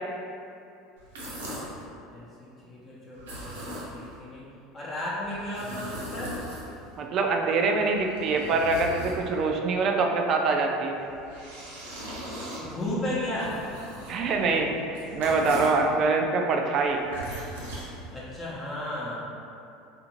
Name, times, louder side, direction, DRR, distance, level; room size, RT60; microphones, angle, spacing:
sound 1, 1.0-1.8 3.1-4.2 5.2-7.0 7.7-9.6 11.0-15.9 16.8-18.5, right 1 dB, 90° right, 0.7 m, -39 dB
voice 1, 2.1-4.5 4.7-6.4 12.6-13.6 14.4-14.5 18.1-19.2, left 1 dB, 30° left, -7 dB, 0.7 m, -34 dB
voice 2, 7.0-11.0 14.1-14.7 15.1-17.0, right 3 dB, 50° right, 2 dB, 0.3 m, -24 dB
2.5 x 2.5 x 3.0 m, 2.6 s
hypercardioid pair, 90°, 0 cm